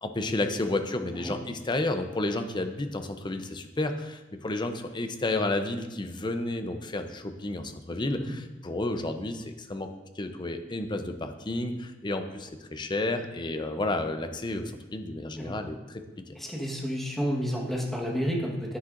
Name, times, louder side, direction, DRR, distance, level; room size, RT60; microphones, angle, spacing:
voice 1, 0.0-9.9 10.2-16.0, left 2 dB, 25° left, 7 dB, 0.6 m, -31 dB
voice 2, 16.3-18.8, equal, ahead, -2 dB, 1.3 m, -30 dB
10.0 x 9.7 x 2.5 m, 1.1 s
head